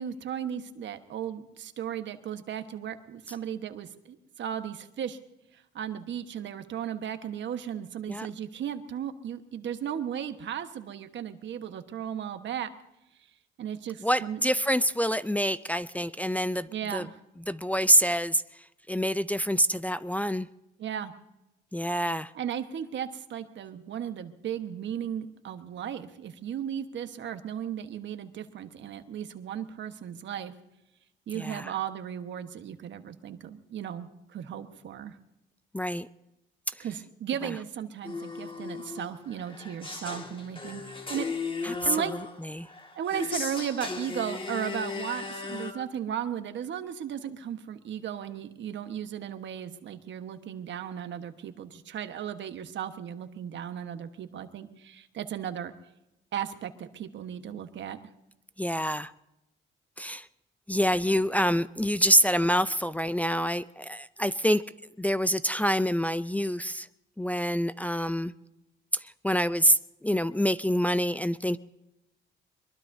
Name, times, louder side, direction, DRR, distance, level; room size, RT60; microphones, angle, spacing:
voice 1, 0.0-5.2 5.5-12.7 13.6-14.4 16.7-17.2 20.8-21.1 22.3-30.5 31.3-35.2 36.8-41.3 41.8-42.2 43.0-55.7 56.3-58.0, right 9 dB, 65° right, 1.3 m, -35 dB
voice 2, 14.0-17.1 17.5-18.4 18.9-20.5 21.7-22.3 31.3-31.7 35.7-36.1 41.6-42.0 42.5-42.7 58.6-59.1 60.0-60.3 60.7-64.6 65.0-66.9 67.2-68.3 68.9-71.6, equal, 5° left, 0.5 m, -26 dB
sound 1, 38.0-45.7, left 4 dB, 25° left, 2.0 m, -37 dB
23.5 x 22.0 x 2.7 m
cardioid pair, 90°, 20 cm